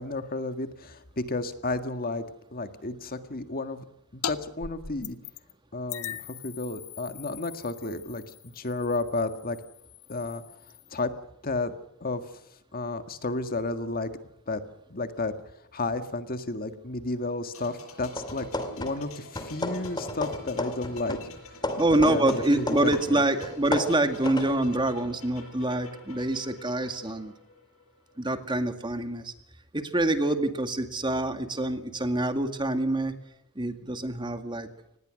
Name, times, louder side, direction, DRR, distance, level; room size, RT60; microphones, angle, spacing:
voice 1, 0.0-2.3 2.5-3.8 4.1-5.2 5.7-8.2 8.6-9.6 10.1-10.4 10.9-11.1 11.4-11.7 12.0-12.2 12.7-14.1 14.5-14.6 14.9-15.3 15.7-18.5 18.8-21.2 22.0-23.2, left 2 dB, 40° left, 9 dB, 1.8 m, -32 dB
sound 1, 4.2-4.4 4.6-5.5 5.9-11.0, left 10 dB, 85° left, 1.4 m, -40 dB
sound 2, 17.5-28.2 28.4-28.6, left 2 dB, 70° left, 6.8 m, -48 dB
sound 3, 18.1-19.1 19.4-23.1 23.4-24.6, left 1 dB, 20° left, 2.6 m, -33 dB
voice 2, 21.8-27.3 28.2-29.3 29.7-33.2 33.6-34.7, right 1 dB, 20° right, 8 dB, 2.1 m, -26 dB
25.5 x 20.0 x 6.4 m, 0.80 s
head